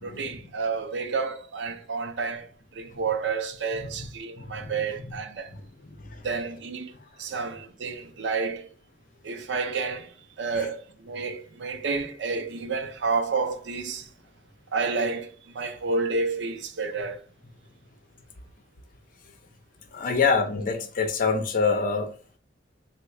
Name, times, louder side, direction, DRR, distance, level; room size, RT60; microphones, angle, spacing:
voice 1, 0.0-5.5 6.2-6.9 7.2-8.7 9.2-14.1 14.7-17.2, right 4 dB, 80° right, 0.5 m, -30 dB
voice 2, 4.4-4.7 5.0-5.2 5.5-6.3 10.6-10.7 19.9-22.1, left 5 dB, 50° left, 0.6 m, -27 dB
3.5 x 2.1 x 3.1 m
head